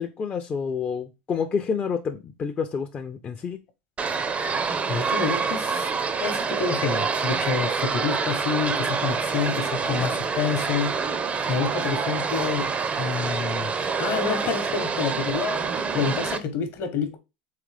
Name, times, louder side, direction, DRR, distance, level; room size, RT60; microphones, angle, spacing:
voice 1, 0.0-3.6, left 6 dB, 30° left, 0.4 m, -29 dB
sound 1, 4.0-16.4, right 5 dB, 25° right, 0.5 m, -27 dB
voice 2, 4.9-5.9 6.2-11.0 11.5-12.7 13.0-13.7 14.0-15.6 15.9-17.2, left 6 dB, 50° left, 0.9 m, -28 dB
3.8 x 3.1 x 3.3 m
hypercardioid pair, 100°, 5 cm